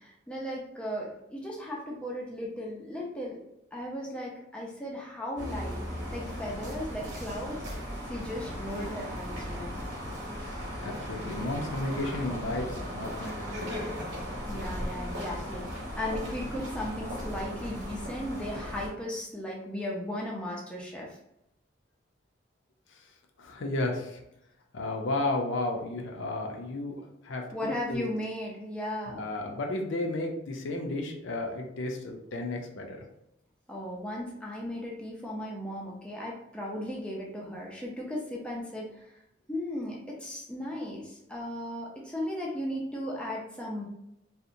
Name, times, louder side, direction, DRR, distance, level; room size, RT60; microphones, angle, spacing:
voice 1, 0.0-3.4 3.7-5.8 6.1-9.8 14.5-21.2 27.5-29.2 33.7-39.1 39.5-43.8, left 1 dB, 5° left, -3 dB, 0.4 m, -36 dB
sound 1, 5.4-18.9, equal, 70° right, 0.9 m, -37 dB
voice 2, 10.8-13.8 23.4-24.2 24.7-26.9 27.2-28.1 29.1-33.0, left 2 dB, 75° left, 2 dB, 0.5 m, -33 dB
2.7 x 2.1 x 2.5 m, 0.83 s
head